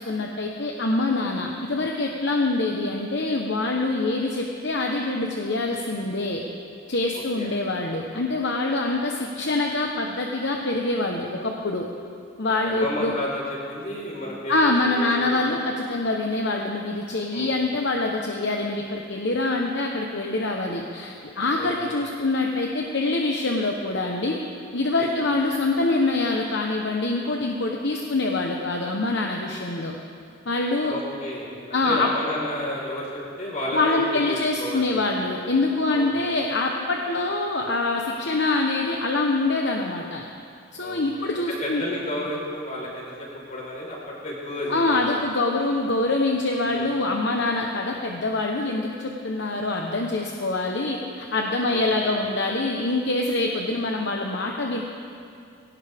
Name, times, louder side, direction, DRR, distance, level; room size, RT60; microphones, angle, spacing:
voice 1, 0.0-6.4 6.9-11.9 12.4-13.1 14.5-24.4 24.7-29.9 30.4-30.9 31.7-32.1 33.7-40.2 40.7-41.8 44.7-54.8, left 2 dB, 65° left, 1 dB, 1.1 m, -25 dB
voice 2, 7.1-7.5 12.4-15.5 17.3-17.5 21.6-22.0 25.0-25.1 30.9-33.1 33.4-34.9 35.8-36.2 40.8-45.0 46.7-46.9 51.7-52.2, left 1 dB, 40° left, -4 dB, 4.6 m, -32 dB
21.0 x 18.0 x 3.6 m, 2.4 s
head